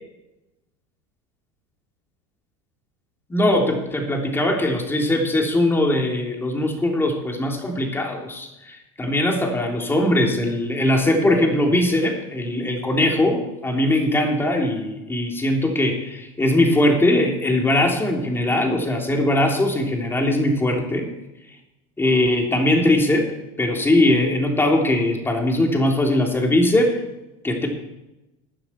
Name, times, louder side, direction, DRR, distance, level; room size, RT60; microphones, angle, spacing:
voice 1, 3.3-21.1 22.0-23.3 23.6-27.0 27.4-27.7, left 1 dB, 15° left, 1 dB, 3.4 m, -20 dB
14.5 x 9.8 x 4.6 m, 0.95 s
supercardioid pair, 100°, 16 cm